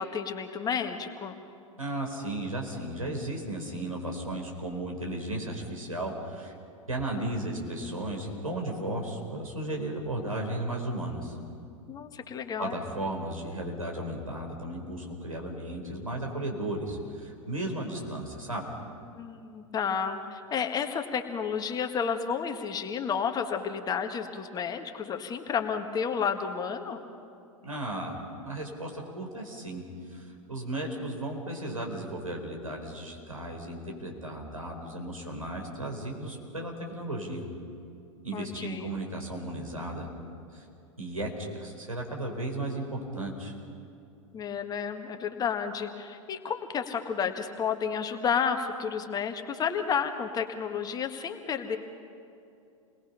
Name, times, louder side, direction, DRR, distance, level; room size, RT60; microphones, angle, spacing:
voice 1, 0.0-1.4 11.9-12.8 19.1-27.0 38.3-38.9 44.3-51.8, left 7 dB, 20° left, 6 dB, 1.7 m, -31 dB
voice 2, 1.8-6.5 6.9-11.4 12.6-18.7 27.6-28.2 28.4-29.8 30.1-37.4 38.2-40.1 40.5-40.6 41.0-43.5, right 1 dB, 85° right, 0 dB, 4.4 m, -35 dB
29.0 x 21.0 x 5.7 m, 2.6 s
figure-of-eight pair, 95°, 17 cm